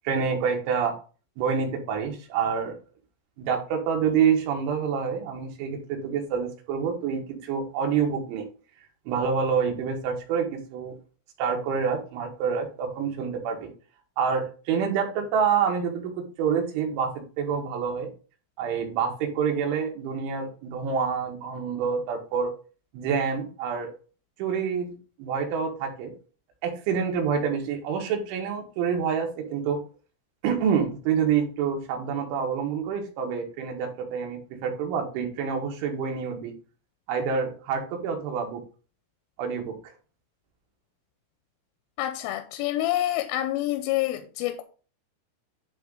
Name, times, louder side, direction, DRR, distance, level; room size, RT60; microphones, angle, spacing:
voice 1, 0.1-1.0 1.4-2.8 3.4-8.5 9.1-10.9 11.4-13.7 14.2-18.1 18.6-22.5 22.9-23.9 24.4-26.1 26.6-29.8 30.4-36.5 37.1-38.6 39.4-39.7, right 6 dB, 75° right, 3.8 m, -27 dB
voice 2, 42.0-44.6, left 14 dB, 85° left, 3.1 m, -27 dB
10.5 x 3.5 x 3.8 m
omnidirectional pair, 5.6 m